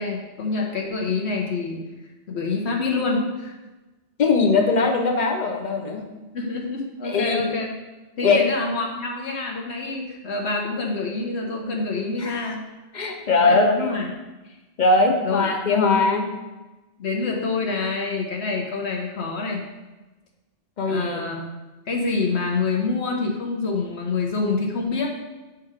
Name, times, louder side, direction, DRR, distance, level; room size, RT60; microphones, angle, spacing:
voice 1, 0.0-1.8 2.3-3.5 6.3-7.7 8.2-12.6 13.4-14.2 15.2-15.5 17.0-19.7 20.8-21.4 21.9-25.1, left 3 dB, 70° left, 0 dB, 1.1 m, -26 dB
voice 2, 4.2-6.0 7.0-7.4 8.2-8.4 12.2-12.5 12.9-14.0 14.8-16.3 20.8-21.2, left 3 dB, 45° left, 3 dB, 0.8 m, -20 dB
7.9 x 2.9 x 4.9 m, 1.1 s
omnidirectional pair, 1.2 m